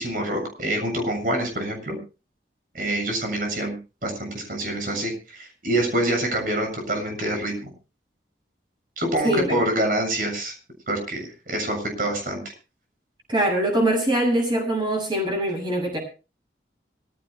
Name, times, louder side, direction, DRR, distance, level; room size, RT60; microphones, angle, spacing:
voice 1, 0.0-2.0 2.7-3.8 4.0-7.7 9.0-10.5 10.9-12.5, right 1 dB, 50° right, 4 dB, 7.2 m, -26 dB
voice 2, 9.2-9.6 13.3-16.0, right 1 dB, 25° right, 1 dB, 7.2 m, -23 dB
25.5 x 15.5 x 2.3 m, 0.32 s
head